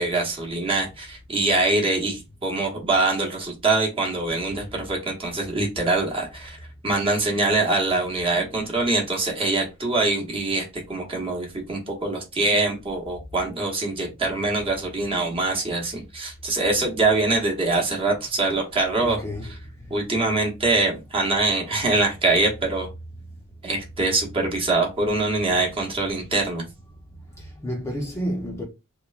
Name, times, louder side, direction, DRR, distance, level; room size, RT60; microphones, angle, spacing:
voice 1, 0.0-6.6 6.8-19.2 19.9-22.9 23.6-26.6, right 2 dB, 25° right, 0.8 m, -24 dB
voice 2, 19.0-19.9 27.4-28.6, equal, 10° left, 0.5 m, -31 dB
2.9 x 2.1 x 2.3 m
head